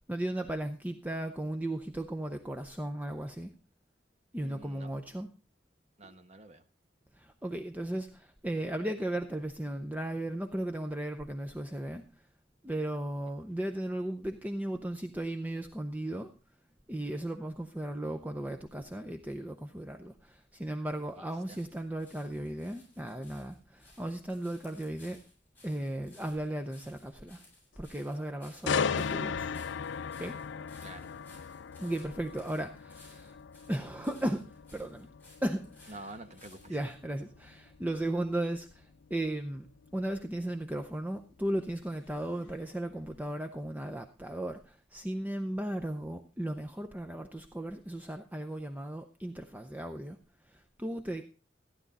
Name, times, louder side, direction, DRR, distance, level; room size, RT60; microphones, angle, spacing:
voice 1, 0.1-3.5 4.3-5.3 7.1-12.3 12.6-16.3 16.9-25.2 25.6-27.4 27.8-29.6 30.2-30.4 31.8-33.4 33.7-35.1 35.4-36.1 36.7-39.7 39.9-50.2 50.4-51.2, right 1 dB, 10° right, 4 dB, 0.6 m, -36 dB
voice 2, 4.4-4.9 6.0-6.6 21.2-21.6 30.8-31.1 35.9-36.8, right 2 dB, 35° right, 7 dB, 1.2 m, -48 dB
sound 1, 20.4-37.0 37.7-37.8, left 2 dB, 10° left, 7.7 m, -60 dB
sound 2, 28.7-42.5 42.9-43.2, left 6 dB, 80° left, 0.5 m, -38 dB
14.5 x 10.0 x 4.1 m, 0.35 s
head